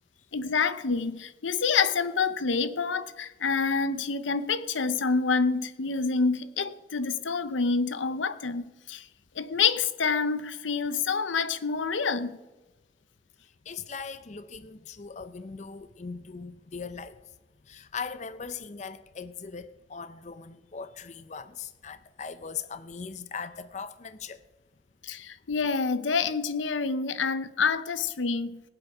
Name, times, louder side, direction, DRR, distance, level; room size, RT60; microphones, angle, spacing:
voice 1, 0.3-9.1 9.4-12.4 25.0-28.6, left 5 dB, 85° left, 0.7 m, -27 dB
voice 2, 13.7-17.2 17.7-24.4, left 5 dB, 40° left, 0.5 m, -39 dB
21.0 x 8.0 x 4.9 m
head